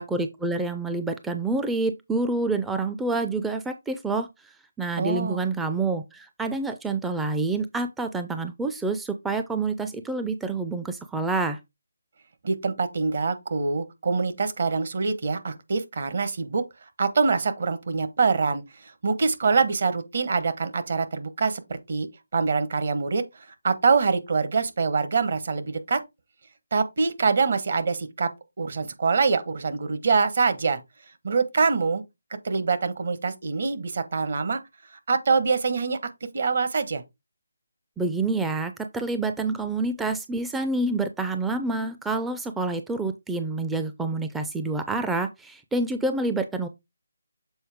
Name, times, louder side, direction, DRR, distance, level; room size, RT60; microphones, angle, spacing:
voice 1, 0.0-11.6 38.0-46.7, right 3 dB, 5° right, 0.4 m, -28 dB
voice 2, 5.0-5.4 12.4-16.6 17.0-22.1 22.3-26.0 26.7-28.3 28.6-30.8 31.2-32.0 32.4-34.6 35.1-36.0 36.3-37.0, right 4 dB, 55° right, 1.2 m, -24 dB
7.0 x 4.3 x 3.5 m
figure-of-eight pair, 155°, 0 cm